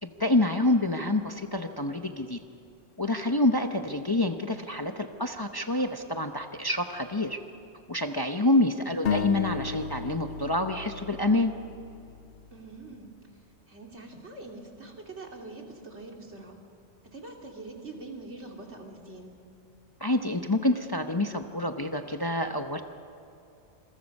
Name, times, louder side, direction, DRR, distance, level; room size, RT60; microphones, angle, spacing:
voice 1, 0.0-2.4 3.0-7.4 7.9-11.5 20.0-22.8, left 2 dB, 20° left, 5 dB, 0.8 m, -27 dB
voice 2, 8.6-9.0 12.5-16.6 17.0-19.3, right 3 dB, 70° right, 1 dB, 3.0 m, -44 dB
sound 1, 9.1-12.7, left 6 dB, 60° left, 0.9 m, -34 dB
27.5 x 21.5 x 5.4 m, 2.7 s
omnidirectional pair, 1.2 m